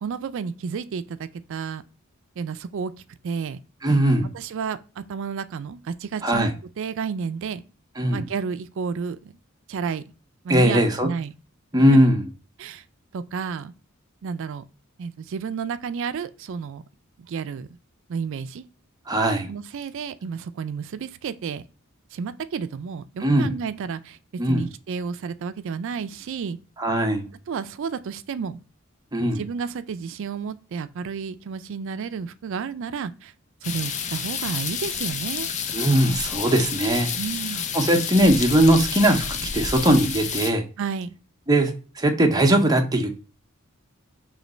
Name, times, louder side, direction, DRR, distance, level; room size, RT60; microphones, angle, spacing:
voice 1, 0.0-1.8 2.4-2.9 3.2-3.6 4.3-6.5 6.8-7.6 8.1-9.4 9.7-10.0 10.4-11.3 11.9-12.0 12.6-12.8 13.1-13.7 14.2-14.6 15.0-16.8 17.3-17.7 18.1-18.6 19.5-21.6 22.1-24.2 24.5-26.6 27.5-28.6 29.2-33.3 33.6-35.5 37.2-37.7 40.8-41.2, right 6 dB, 65° right, 0.4 m, -31 dB
voice 2, 3.8-4.3 6.2-6.5 8.0-8.2 10.5-11.1 11.7-12.3 19.1-19.5 23.2-23.5 24.4-24.7 26.8-27.3 29.1-29.4 35.7-37.1 37.7-40.6 41.5-43.1, right 1 dB, 20° right, 0.7 m, -20 dB
sound 1, 33.6-40.5, left 7 dB, 35° left, 0.4 m, -29 dB
3.2 x 3.1 x 3.8 m
head